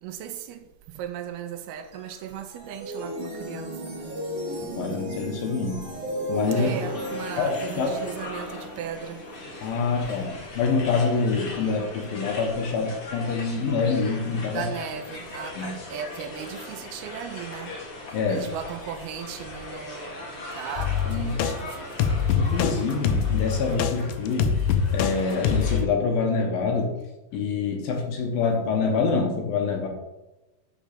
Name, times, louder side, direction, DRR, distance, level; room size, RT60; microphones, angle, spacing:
voice 1, 0.0-4.1 6.5-9.2 14.4-17.8 18.1-21.9, right 9 dB, 80° right, 2.4 m, -37 dB
sound 1, 1.7-10.9, equal, 40° right, 2.9 m, -36 dB
voice 2, 4.8-5.8 6.3-6.8 7.4-8.0 9.6-14.7 15.6-15.8 18.1-18.5 21.1-21.4 22.3-24.6 24.9-26.9 27.3-29.9, left 4 dB, 70° left, 2.5 m, -26 dB
sound 2, 6.4-25.8, left 2 dB, 45° left, 2.1 m, -39 dB
sound 3, 20.8-21.5 22.0-22.7 23.0-25.1 25.4-25.8, left 7 dB, 85° left, 2.0 m, -24 dB
6.3 x 6.2 x 6.6 m
omnidirectional pair, 4.7 m